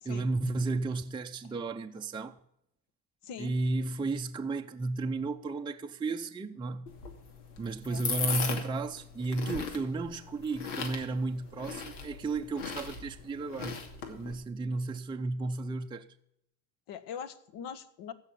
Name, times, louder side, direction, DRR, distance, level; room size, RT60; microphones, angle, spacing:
voice 1, 0.0-2.4 3.4-7.0 7.6-13.8 14.1-16.1, right 3 dB, 10° right, 0.6 m, -33 dB
voice 2, 3.2-3.5 7.9-8.0 16.9-18.1, left 8 dB, 60° left, 1.4 m, -42 dB
sound 1, 6.9-14.3, left 5 dB, 80° left, 2.6 m, -38 dB
15.5 x 5.8 x 8.5 m
supercardioid pair, 100°, 46 cm